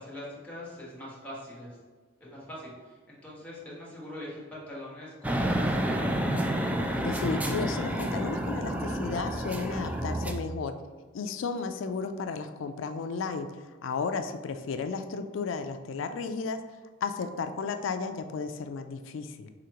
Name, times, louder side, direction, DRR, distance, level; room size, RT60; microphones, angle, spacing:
voice 1, 0.0-1.8 2.2-6.7, left 1 dB, 10° left, -7 dB, 1.4 m, -42 dB
sound 1, 5.2-10.3, right 1 dB, 10° right, 0.3 m, -29 dB
voice 2, 7.0-10.7 11.1-13.5 13.8-16.6 17.0-19.5, left 4 dB, 70° left, 8 dB, 0.4 m, -33 dB
5.0 x 3.3 x 2.9 m, 1.4 s
head